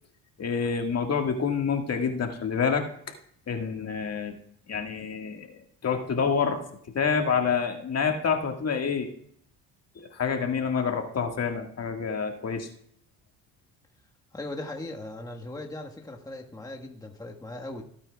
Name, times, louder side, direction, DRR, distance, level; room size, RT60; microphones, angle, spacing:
voice 1, 0.4-2.9 3.5-4.3 4.7-6.6 7.0-9.1 10.0-12.7, left 6 dB, 45° left, 4 dB, 1.8 m, -27 dB
voice 2, 14.3-17.8, left 2 dB, 10° left, 1 dB, 1.5 m, -38 dB
17.0 x 8.9 x 2.4 m, 0.64 s
supercardioid pair, 85°, 36 cm